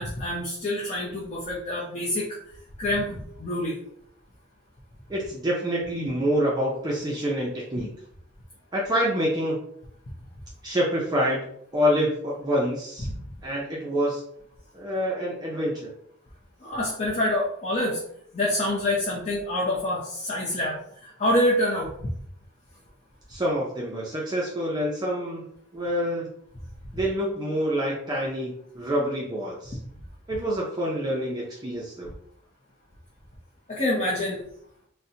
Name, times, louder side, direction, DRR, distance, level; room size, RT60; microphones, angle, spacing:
voice 1, 0.0-2.4 2.8-3.8 13.1-13.2 16.6-18.0 18.3-22.1 33.7-34.4, left 1 dB, 30° left, -5 dB, 0.6 m, -26 dB
voice 2, 5.1-7.9 8.7-9.6 10.6-11.4 11.7-13.1 13.4-14.2 14.7-15.9 23.3-25.4 25.7-26.3 26.9-29.8 30.3-32.1, equal, 20° right, -4 dB, 0.4 m, -27 dB
3.9 x 2.1 x 2.7 m, 0.69 s
head